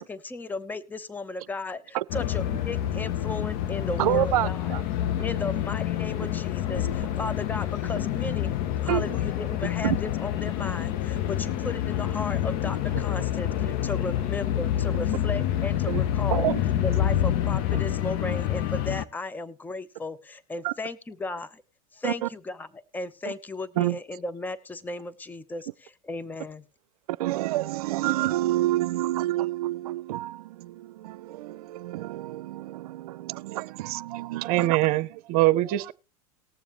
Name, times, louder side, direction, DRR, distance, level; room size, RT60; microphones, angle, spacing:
voice 1, 0.0-4.7 5.2-8.5 8.8-16.5 16.8-21.6 21.9-22.7 22.9-26.6, left 2 dB, 10° left, 0.7 m, -35 dB
sound 1, 2.1-19.0, left 11 dB, 55° left, 0.9 m, -27 dB
voice 2, 4.0-4.8 8.9-9.1 9.8-10.0 15.9-16.0 16.3-16.6 20.6-20.7 22.0-22.3 23.2-23.3 23.8-24.0 27.1-34.9, right 15 dB, 85° right, 0.5 m, -28 dB
voice 3, 34.1-35.9, right 17 dB, 55° right, 0.7 m, -24 dB
19.5 x 7.1 x 3.1 m
supercardioid pair, 110°, 19 cm